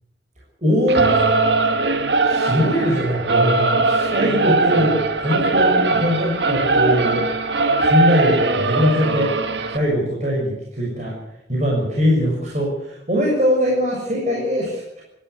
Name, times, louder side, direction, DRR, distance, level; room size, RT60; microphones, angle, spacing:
voice 1, 0.6-1.2 2.2-7.2 7.8-9.3 9.7-11.1 11.5-15.0, equal, 40° right, -3 dB, 6.7 m, -21 dB
Singing / Musical instrument, 0.9-9.8, right 3 dB, 75° right, 1.8 m, -20 dB
28.5 x 13.5 x 8.3 m, 0.81 s
head